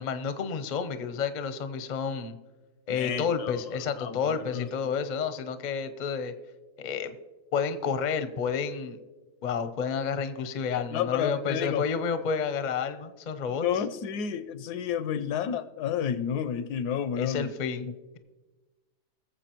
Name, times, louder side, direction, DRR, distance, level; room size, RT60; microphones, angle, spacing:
voice 1, 0.0-2.4 2.9-6.3 6.8-7.2 7.5-9.0 9.4-13.7 17.2-18.2, left 6 dB, 50° left, 10 dB, 0.5 m, -30 dB
voice 2, 2.9-3.6 4.0-4.7 10.7-11.8 13.6-17.5 17.8-17.9, left 8 dB, 85° left, 13 dB, 1.2 m, -31 dB
21.0 x 7.2 x 3.0 m, 1.2 s
omnidirectional pair, 1.7 m